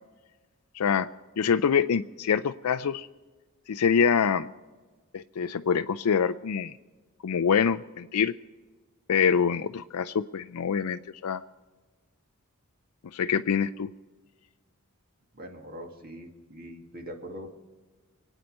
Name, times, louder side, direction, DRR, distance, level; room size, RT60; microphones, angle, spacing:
voice 1, 0.7-1.1 1.4-3.1 3.7-4.5 5.1-6.7 7.2-8.3 9.1-11.4 13.1-13.9, left 7 dB, 80° left, 10 dB, 0.4 m, -25 dB
voice 2, 15.3-17.5, equal, 40° right, 3 dB, 2.1 m, -42 dB
25.5 x 9.1 x 5.4 m, 1.3 s
head